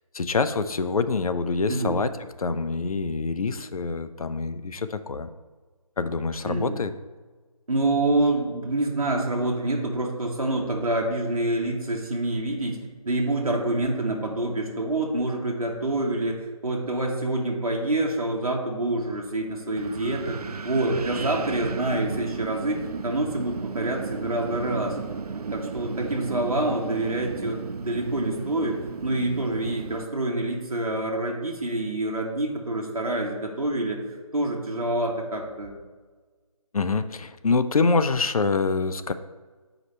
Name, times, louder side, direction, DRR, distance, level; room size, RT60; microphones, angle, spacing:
voice 1, 0.1-2.1 2.4-5.3 6.0-6.9 36.7-39.1, left 4 dB, 70° left, 11 dB, 0.5 m, -25 dB
voice 2, 6.4-6.8 7.7-12.8 13.1-20.4 20.6-24.9 25.5-34.0 34.3-35.7, right 2 dB, 70° right, 0 dB, 1.3 m, -27 dB
Wind, 19.8-30.0, right 5 dB, 85° right, 0.4 m, -35 dB
7.8 x 4.9 x 3.1 m, 1.4 s
figure-of-eight pair, 155°, 19 cm